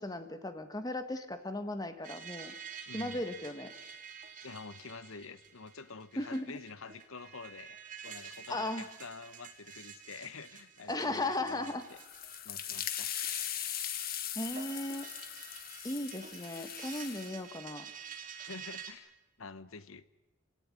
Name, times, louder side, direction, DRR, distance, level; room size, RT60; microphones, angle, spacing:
voice 1, 0.0-2.5 2.9-3.7 6.2-6.6 8.5-8.9 10.9-11.8 14.3-15.1 15.8-17.9, left 2 dB, 20° left, 8 dB, 1.6 m, -36 dB
sound 1, 2.0-18.9, right 7 dB, 40° right, 3.1 m, -49 dB
voice 2, 2.9-3.2 4.4-7.8 8.0-12.0 12.4-13.1 18.4-19.1 19.4-20.0, left 4 dB, 85° left, 15 dB, 1.1 m, -48 dB
sound 2, 11.9-17.3, left 10 dB, 45° left, 1.5 m, -39 dB
27.5 x 17.0 x 10.0 m, 1.1 s
head